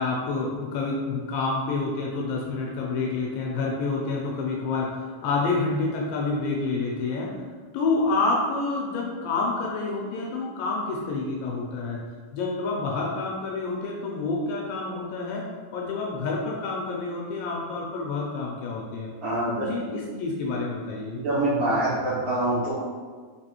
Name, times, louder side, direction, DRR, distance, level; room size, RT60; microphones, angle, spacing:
voice 1, 0.0-7.3 7.7-12.0 12.3-15.5 15.7-19.1 19.5-21.2, left 3 dB, 80° left, -2 dB, 2.1 m, -28 dB
voice 2, 19.2-19.6 21.2-22.7, right 1 dB, 50° right, -14 dB, 1.8 m, -25 dB
5.3 x 3.1 x 2.9 m, 1.5 s
omnidirectional pair, 4.2 m